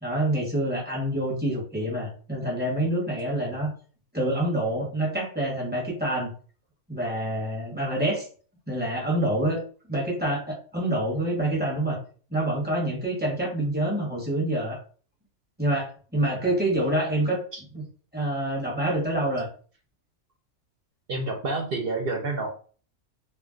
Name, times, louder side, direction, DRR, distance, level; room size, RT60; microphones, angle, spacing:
voice 1, 0.0-3.7 4.1-6.3 6.9-8.3 8.7-9.6 9.9-12.0 12.3-14.8 15.6-17.4 17.7-17.8 18.1-19.5, right 1 dB, 10° right, -3 dB, 0.7 m, -27 dB
voice 2, 21.1-22.5, right 2 dB, 60° right, 1 dB, 0.6 m, -29 dB
2.4 x 2.2 x 3.6 m, 0.40 s
omnidirectional pair, 1.5 m